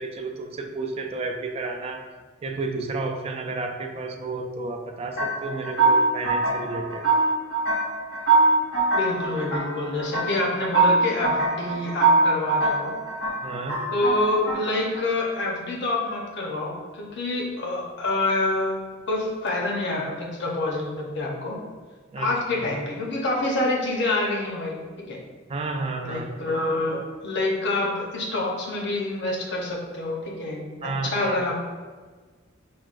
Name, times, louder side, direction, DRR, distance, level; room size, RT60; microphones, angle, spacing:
voice 1, 0.0-2.0 2.4-7.0 13.4-13.8 22.1-22.7 25.5-26.3 30.8-31.4, right 3 dB, 30° right, 4 dB, 0.3 m, -31 dB
sound 1, 5.2-15.1, right 3 dB, 80° left, 1.4 m, -23 dB
voice 2, 8.9-13.0 13.9-21.6 22.2-25.2 26.0-31.5, left 2 dB, 60° left, -2 dB, 0.8 m, -27 dB
5.9 x 2.2 x 2.5 m, 1.4 s
head